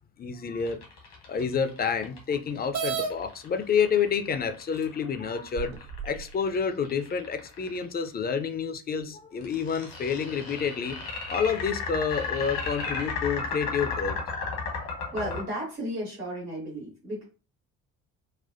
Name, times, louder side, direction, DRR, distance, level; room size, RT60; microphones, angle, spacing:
voice 1, 0.2-0.8 1.3-5.7 6.0-11.0 11.3-14.2, left 6 dB, 20° left, 0.4 m, -29 dB
sound 1, 0.6-7.9 9.4-15.4, left 4 dB, 75° left, 1.3 m, -34 dB
Horn for bikes, 2.7-3.1 4.1-4.2 4.8-4.9 5.6-6.2, right 6 dB, 45° right, 0.7 m, -31 dB
voice 2, 15.1-17.2, equal, 85° right, 1.4 m, -34 dB
4.2 x 2.2 x 2.5 m
figure-of-eight pair, 50°, 44 cm